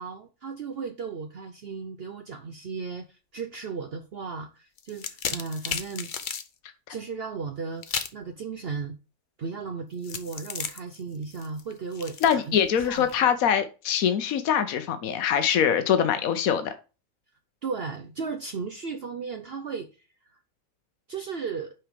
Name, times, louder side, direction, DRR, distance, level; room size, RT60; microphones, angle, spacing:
voice 1, 0.0-6.1 6.9-8.9 9.4-12.6 12.8-13.3 17.6-19.9 20.2-20.4 21.1-21.7, right 5 dB, 55° right, 0.8 m, -35 dB
sound 1, 4.8-6.5 7.8-8.2 10.0-13.2, left 6 dB, 45° left, 0.7 m, -34 dB
voice 2, 12.2-16.7, left 8 dB, 80° left, 1.3 m, -23 dB
5.9 x 4.8 x 5.0 m
omnidirectional pair, 1.4 m